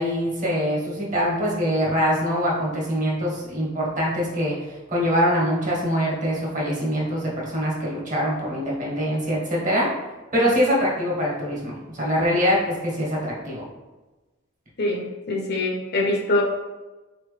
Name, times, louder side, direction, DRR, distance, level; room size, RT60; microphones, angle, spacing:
voice 1, 0.0-9.9 10.3-13.6, equal, 40° right, -4 dB, 1.3 m, -24 dB
voice 2, 14.8-16.4, left 2 dB, 55° left, 0 dB, 0.8 m, -24 dB
4.3 x 3.0 x 3.3 m, 1.2 s
head